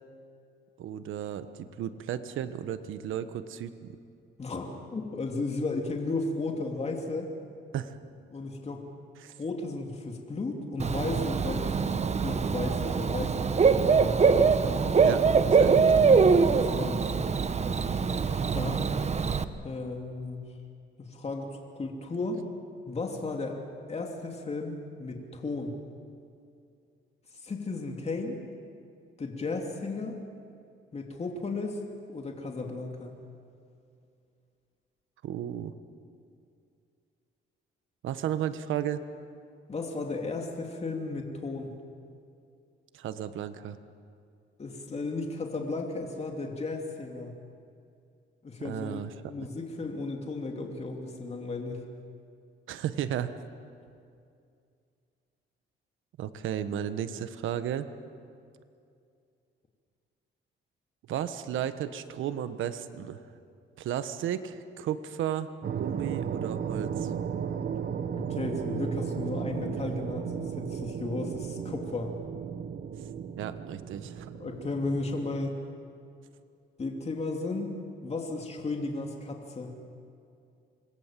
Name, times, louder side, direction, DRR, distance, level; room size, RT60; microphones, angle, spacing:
voice 1, 0.8-3.9 7.7-8.0 9.2-9.3 15.0-15.2 15.5-15.9 35.2-35.7 38.0-39.0 42.9-43.8 48.6-49.1 52.7-53.3 56.2-57.9 61.1-63.2 63.8-65.5 65.8-67.1 73.4-74.3, right 10 dB, 80° right, 11 dB, 1.4 m, -34 dB
voice 2, 4.4-7.3 8.3-8.8 9.4-12.0 12.2-14.4 16.2-17.0 18.5-18.9 19.6-20.4 21.0-22.4 22.9-23.6 23.9-25.8 27.3-28.4 29.2-30.2 30.9-31.8 32.1-33.2 39.7-41.8 44.6-47.3 48.4-49.0 49.3-51.9 68.1-72.1 74.4-75.6 76.8-77.7 78.0-79.7, left 3 dB, 30° left, 2 dB, 2.9 m, -34 dB
Bird / Cricket, 10.8-19.4, right 5 dB, 35° right, 1.1 m, -23 dB
sound 1, 65.6-75.5, right 7 dB, 55° right, 1.4 m, -35 dB
27.0 x 21.5 x 7.6 m, 2.4 s
cardioid pair, 90°, 20 cm